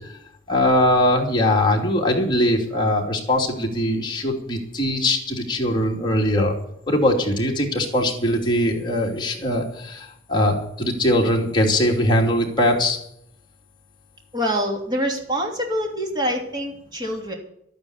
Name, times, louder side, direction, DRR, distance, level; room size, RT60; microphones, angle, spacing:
voice 1, 0.5-6.5 6.9-13.0, left 1 dB, 25° left, -1 dB, 2.9 m, -21 dB
voice 2, 14.3-17.3, equal, 20° right, 2 dB, 2.8 m, -25 dB
12.5 x 9.5 x 8.3 m, 0.73 s
head